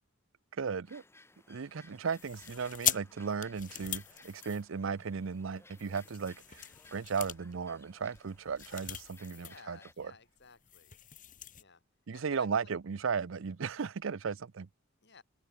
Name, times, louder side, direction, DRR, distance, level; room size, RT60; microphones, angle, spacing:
voice 1, 0.6-1.0 1.5-6.6 6.9-10.1 12.1-14.7, right 5 dB, 65° right, 0.5 m, -36 dB
sound 1, 0.8-9.9, left 2 dB, 10° left, 2.9 m, -60 dB
sound 2, 2.1-5.2 5.7-9.6 9.9-10.0 10.4-11.6, left 11 dB, 40° left, 2.2 m, -40 dB
voice 2, 9.2-11.0 11.6-11.8 12.1-12.7 15.0-15.2, left 4 dB, 55° left, 5.6 m, -57 dB
head